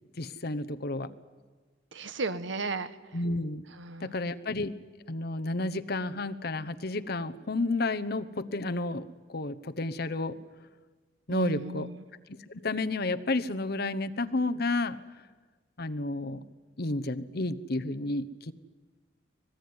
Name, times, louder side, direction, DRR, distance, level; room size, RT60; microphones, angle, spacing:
voice 1, 0.2-1.1 3.1-3.6 4.0-4.8 5.1-10.4 11.3-11.9 12.5-15.0 15.8-16.4 16.8-18.5, left 2 dB, 55° left, 10 dB, 1.0 m, -31 dB
voice 2, 1.9-3.0 3.8-4.1 11.3-12.0, right 3 dB, 75° right, 13 dB, 1.2 m, -35 dB
25.5 x 18.5 x 9.6 m, 1.4 s
head